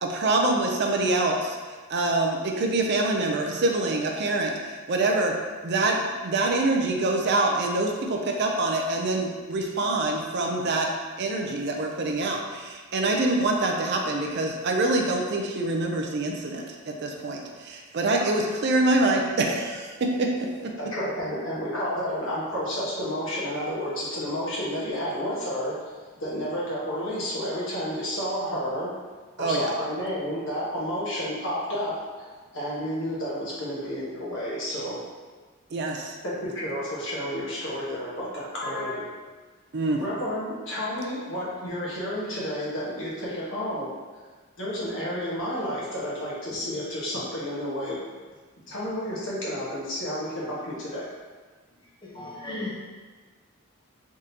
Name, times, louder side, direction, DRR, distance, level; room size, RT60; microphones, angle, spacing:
voice 1, 0.0-1.6 1.9-5.4 5.6-10.9 11.2-20.7 29.4-29.7 35.7-36.2 39.7-40.0, right 2 dB, 50° right, 1 dB, 0.4 m, -25 dB
voice 2, 20.9-28.9 29.4-32.3 32.5-35.0 36.2-39.1 40.0-43.9 44.6-48.0 48.7-51.1, equal, 60° left, -7 dB, 1.2 m, -31 dB
voice 3, 52.0-52.7, left 2 dB, 20° left, -5 dB, 0.7 m, -35 dB
3.7 x 3.6 x 2.8 m, 1.4 s
head